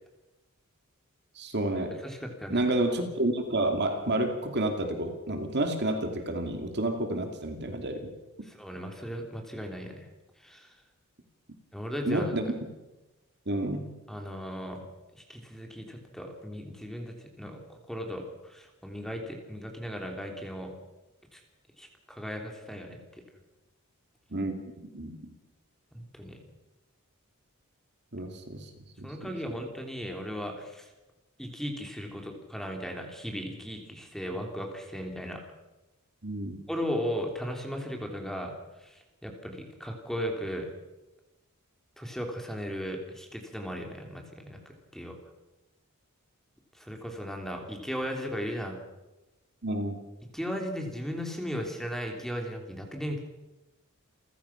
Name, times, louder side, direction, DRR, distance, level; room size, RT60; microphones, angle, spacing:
voice 1, 1.4-2.0 2.5-8.1 12.1-12.4 13.5-13.9 24.3-25.2 28.1-28.7 29.0-29.6 36.2-36.6 49.6-50.0, right 1 dB, 50° right, 5 dB, 2.7 m, -30 dB
voice 2, 2.0-2.6 8.4-10.1 10.4-10.7 11.7-12.3 14.1-14.9 15.1-20.7 21.3-21.4 21.8-23.0 25.9-26.4 29.0-30.9 31.4-35.4 36.7-38.5 38.8-40.7 42.0-44.6 44.9-45.1 46.8-48.8 50.3-53.2, equal, ahead, 2 dB, 3.1 m, -36 dB
29.5 x 15.0 x 5.9 m, 1.1 s
head